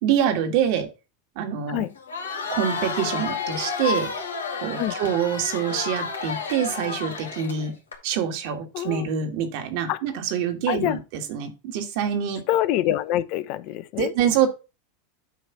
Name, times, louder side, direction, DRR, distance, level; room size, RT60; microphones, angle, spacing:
voice 1, 0.0-0.9 1.4-1.9 2.5-4.1 4.6-7.7 8.0-12.4 14.0-14.5, right 8 dB, 60° right, 1.9 m, -25 dB
Crowd, 1.9-8.0, left 5 dB, 90° left, 2.3 m, -31 dB
voice 2, 8.7-9.1 9.9-10.0 10.7-11.0 12.5-14.1, left 13 dB, 55° left, 0.7 m, -25 dB
9.2 x 3.3 x 5.9 m
hypercardioid pair, 95°, 0 cm